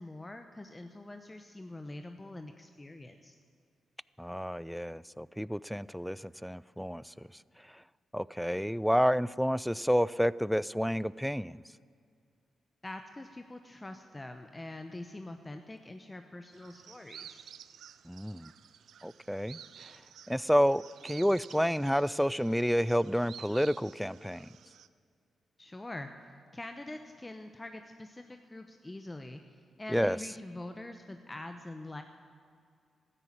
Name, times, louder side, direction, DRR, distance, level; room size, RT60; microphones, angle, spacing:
voice 1, 0.0-3.3 12.8-17.5 25.6-26.1 26.5-32.0, left 2 dB, 20° left, 6 dB, 0.9 m, -44 dB
voice 2, 4.2-7.3 7.6-7.8 8.1-11.6 18.0-18.5 19.0-20.0 20.3-24.5 29.9-30.2, equal, ahead, 20 dB, 0.3 m, -30 dB
sound 1, 16.5-24.9, right 9 dB, 80° right, 0.5 m, -52 dB
13.5 x 10.0 x 8.7 m, 2.3 s
cardioid pair, 60°, 0 cm